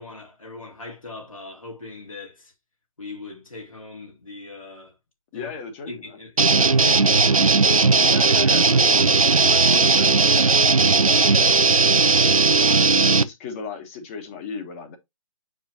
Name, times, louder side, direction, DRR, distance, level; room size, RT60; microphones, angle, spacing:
voice 1, 0.0-2.5 3.0-4.9 5.3-5.5 5.9-7.4, left 2 dB, 75° left, 2.4 m, -39 dB
voice 2, 5.3-6.2 6.6-6.7 8.0-9.1 9.3-11.6 12.1-15.0, left 5 dB, 25° left, 1.5 m, -36 dB
sound 1, 6.4-13.2, right 4 dB, 80° right, 0.7 m, -17 dB
8.4 x 4.7 x 2.8 m
figure-of-eight pair, 140°, 17 cm